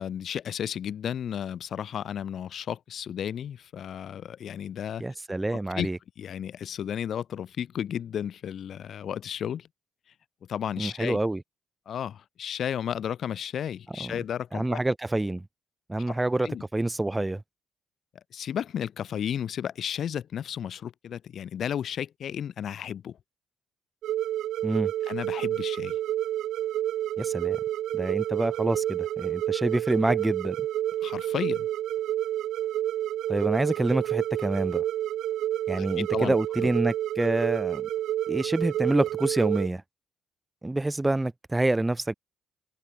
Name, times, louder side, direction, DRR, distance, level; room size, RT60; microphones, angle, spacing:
voice 1, 0.0-5.0 5.5-5.9 6.2-9.7 10.5-11.2 11.9-14.8 16.4-16.6 18.3-23.2 25.0-26.0 31.0-31.7 35.8-36.7, left 9 dB, 60° left, 5.4 m, -33 dB
voice 2, 5.0-6.0 10.8-11.4 14.0-14.1 14.5-15.4 15.9-17.4 24.6-24.9 27.2-27.6 27.9-30.6 33.3-34.8 35.7-37.9 38.3-39.8 40.6-42.1, right 2 dB, 15° right, 2.4 m, -27 dB
sound 1, 24.0-39.7, right 12 dB, 80° right, 2.2 m, -29 dB
cardioid pair, 90°, 0 cm